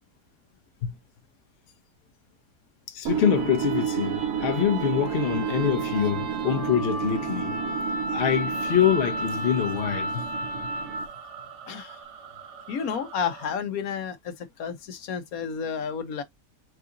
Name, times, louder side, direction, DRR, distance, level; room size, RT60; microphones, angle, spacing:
voice 1, 2.9-7.6 8.1-10.2, left 9 dB, 50° left, 0.8 m, -25 dB
sound 1, 3.1-11.2, right 5 dB, 60° right, 1.7 m, -29 dB
sound 2, 8.5-13.5, right 8 dB, 90° right, 1.6 m, -45 dB
voice 2, 11.7-12.0 12.7-16.2, left 7 dB, 65° left, 1.2 m, -31 dB
4.6 x 4.0 x 2.4 m
omnidirectional pair, 1.7 m